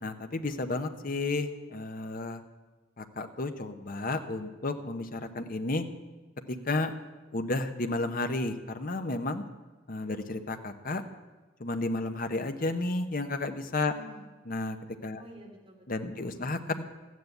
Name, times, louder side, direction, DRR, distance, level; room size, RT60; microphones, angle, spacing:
voice 1, 0.0-2.4 3.0-5.8 6.5-6.9 7.3-9.4 9.9-11.0 11.6-13.9 14.5-14.8 15.0-15.2 15.9-16.8, left 2 dB, 45° left, 7 dB, 1.0 m, -32 dB
voice 2, 13.8-14.4 15.1-16.6, right 1 dB, 30° right, -1 dB, 3.1 m, -51 dB
14.0 x 9.5 x 8.0 m, 1.3 s
head